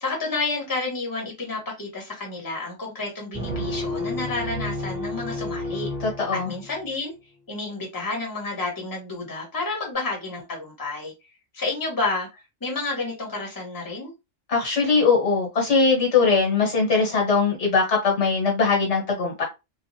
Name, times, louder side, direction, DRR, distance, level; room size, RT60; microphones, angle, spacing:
voice 1, 0.0-5.9 6.4-7.1 7.5-11.1 11.5-14.1, left 3 dB, 20° left, 1.1 m, -30 dB
sound 1, 3.3-6.9, left 1 dB, 5° right, 1.3 m, -31 dB
voice 2, 6.0-6.5 14.5-19.4, left 4 dB, 70° left, 1.4 m, -21 dB
3.0 x 2.4 x 2.6 m
omnidirectional pair, 1.2 m